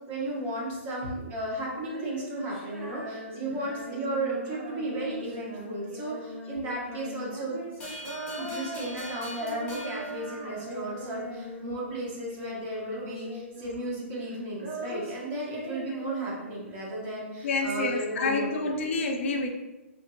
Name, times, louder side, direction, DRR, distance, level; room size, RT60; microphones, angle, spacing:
voice 1, 0.1-7.6 8.4-18.5, right 1 dB, 25° right, -4 dB, 0.8 m, -34 dB
Female singing, 1.7-12.0 12.3-14.0 14.2-16.9, right 1 dB, 70° right, 1.2 m, -40 dB
sound 1, 7.8-11.0, left 1 dB, 15° left, 0.7 m, -43 dB
voice 2, 17.4-19.5, left 3 dB, 60° left, 3 dB, 0.4 m, -28 dB
2.7 x 2.5 x 2.6 m, 1.1 s
hypercardioid pair, 155°, 7 cm